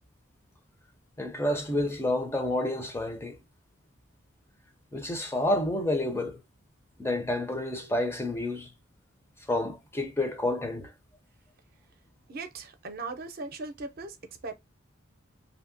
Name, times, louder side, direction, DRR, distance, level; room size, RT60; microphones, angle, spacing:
voice 1, 1.2-3.4 4.9-6.4 7.0-8.7 9.5-10.9, left 1 dB, 15° left, 0.5 m, -29 dB
voice 2, 12.3-14.2 14.4-14.5, right 3 dB, 50° right, 0.6 m, -38 dB
2.8 x 2.7 x 2.6 m
head